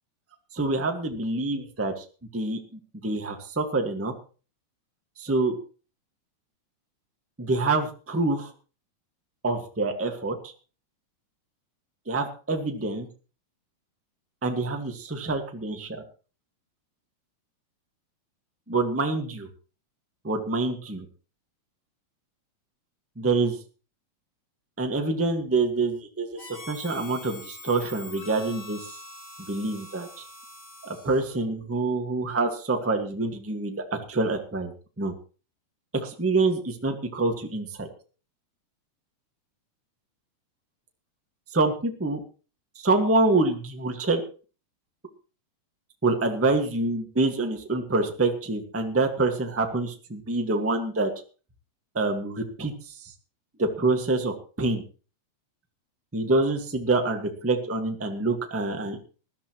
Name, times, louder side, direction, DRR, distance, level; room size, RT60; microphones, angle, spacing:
voice 1, 0.5-2.0 2.3-2.6 3.0-4.1 5.2-5.6 7.4-8.5 9.4-10.5 12.1-13.1 14.4-16.0 18.7-19.5 20.2-21.0 23.2-23.6 24.8-29.0 29.5-30.1 30.8-34.7 35.0-35.1 35.9-37.9 41.5-42.2 42.7-44.2 46.0-51.1 51.9-53.1 53.6-54.8 56.1-59.0, right 3 dB, 10° right, 4 dB, 0.9 m, -26 dB
Harmonica, 26.4-31.4, left 2 dB, 40° left, 5.5 m, -44 dB
20.0 x 13.0 x 3.1 m, 0.37 s
omnidirectional pair, 3.4 m